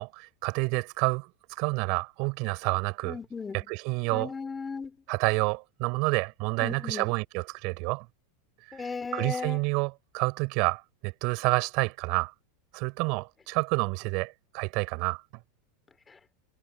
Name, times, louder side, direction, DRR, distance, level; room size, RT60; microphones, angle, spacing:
voice 1, 0.0-3.2 3.5-4.3 5.1-8.1 8.7-8.8 9.1-12.3 12.7-15.2, right 29 dB, 45° right, 5.7 m, -29 dB
voice 2, 3.0-3.7 4.1-4.9 6.6-7.1 8.7-9.6, left 5 dB, 10° left, 5.6 m, -36 dB
supercardioid pair, 155°, 0 cm